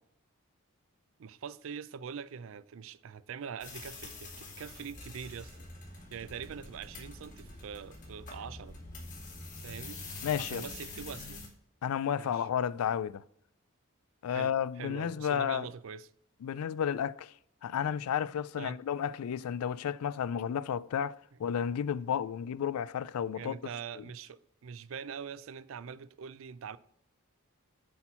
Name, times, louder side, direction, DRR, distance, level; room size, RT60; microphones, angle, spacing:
voice 1, 1.2-5.5 6.1-8.8 9.6-10.0 10.4-11.4 12.1-12.5 14.3-16.1 18.6-18.8 23.3-26.8, right 7 dB, 65° right, 0.4 m, -43 dB
sound 1, 3.6-11.5, left 3 dB, 35° left, 2.1 m, -45 dB
voice 2, 10.2-10.6 11.8-13.2 14.2-15.7 16.4-17.3 17.6-21.1 21.4-23.5 24.0-24.1, left 8 dB, 85° left, 0.3 m, -32 dB
8.3 x 4.4 x 5.5 m
head